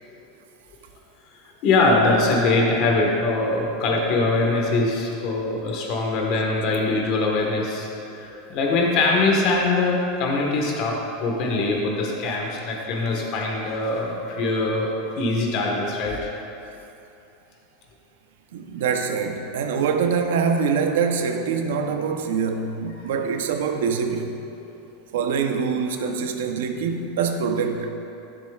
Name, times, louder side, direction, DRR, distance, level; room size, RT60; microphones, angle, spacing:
voice 1, 1.6-14.9 15.1-16.3 23.1-23.3, left 3 dB, 50° left, -1 dB, 1.3 m, -22 dB
voice 2, 18.5-24.4 25.1-27.9, right 6 dB, 85° right, 6 dB, 0.8 m, -24 dB
13.5 x 7.2 x 2.4 m, 2.8 s
supercardioid pair, 145°, 0 cm